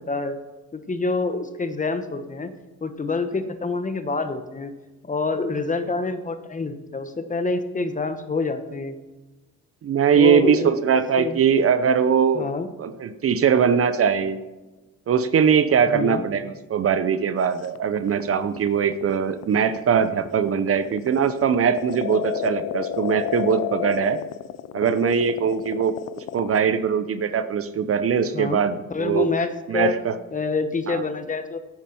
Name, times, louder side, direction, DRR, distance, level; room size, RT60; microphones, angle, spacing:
voice 1, 0.1-0.4 0.7-2.5 2.8-4.7 5.0-9.0 10.1-10.8 11.2-11.4 12.3-12.7 15.9-16.2 28.3-28.6 28.9-30.0 30.3-31.6, left 3 dB, 25° left, 9 dB, 1.1 m, -26 dB
voice 2, 9.8-12.5 12.8-14.4 15.1-24.2 24.7-29.3 29.7-30.1 30.9-31.0, right 7 dB, 50° right, 12 dB, 0.7 m, -21 dB
sound 1, 17.6-26.6, left 11 dB, 55° left, 0.5 m, -30 dB
9.8 x 9.1 x 4.4 m, 1.1 s
cardioid pair, 90°, 30 cm